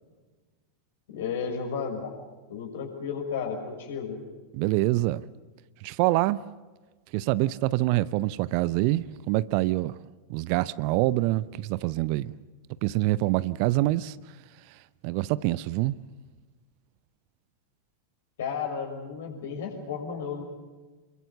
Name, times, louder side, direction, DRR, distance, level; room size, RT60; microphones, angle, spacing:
voice 1, 1.1-2.2 2.5-4.2 18.4-20.4, left 6 dB, 60° left, 6.4 m, -33 dB
voice 2, 4.5-5.2 5.8-6.4 7.1-10.0 10.3-12.3 12.8-14.2 15.0-16.0, right 17 dB, 45° right, 0.7 m, -25 dB
28.5 x 22.5 x 7.0 m
figure-of-eight pair, 90°, 0 cm